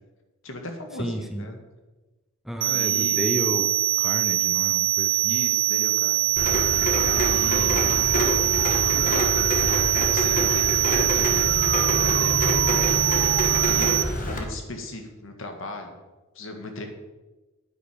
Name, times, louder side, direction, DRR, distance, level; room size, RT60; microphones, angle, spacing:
voice 1, 0.4-1.6 2.6-3.2 3.5-3.6 5.2-6.4 7.0-7.8 8.1-9.4 10.1-11.7 12.0-12.8 13.6-16.0 16.4-16.9, left 1 dB, 65° left, 4 dB, 1.7 m, -37 dB
voice 2, 1.0-1.4 2.4-3.7 4.0-5.3, right 1 dB, ahead, 5 dB, 0.6 m, -31 dB
sound 1, 2.6-14.0, right 17 dB, 60° right, 0.7 m, -23 dB
Rain, 6.4-14.4, left 1 dB, 40° left, 1.7 m, -26 dB
9.2 x 9.2 x 5.1 m, 1.2 s
head